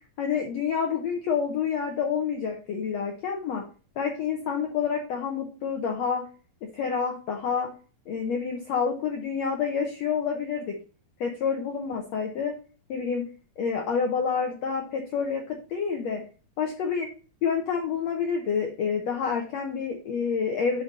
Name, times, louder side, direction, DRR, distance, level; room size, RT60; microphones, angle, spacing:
voice 1, 0.2-3.6 4.0-6.2 6.6-7.7 8.1-10.8 11.2-12.5 12.9-13.2 13.6-16.2 16.6-17.1 17.4-20.8, left 6 dB, 75° left, 2 dB, 1.6 m, -28 dB
6.7 x 5.3 x 4.1 m, 0.37 s
omnidirectional pair, 4.2 m